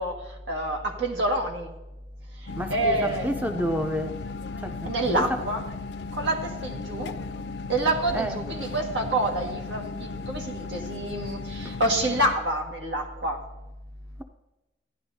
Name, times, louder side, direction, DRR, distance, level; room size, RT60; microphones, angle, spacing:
voice 1, 0.0-1.7 2.4-3.3 4.8-5.6 6.1-7.2 7.7-13.4, right 1 dB, 80° right, 2 dB, 1.8 m, -27 dB
sound 1, 2.5-12.3, left 4 dB, 70° left, 0.4 m, -36 dB
voice 2, 2.6-3.0 3.2-4.2 4.6-5.4 8.1-8.4 11.6-11.8, equal, 10° right, 6 dB, 0.5 m, -29 dB
15.5 x 10.5 x 2.7 m, 1.0 s
head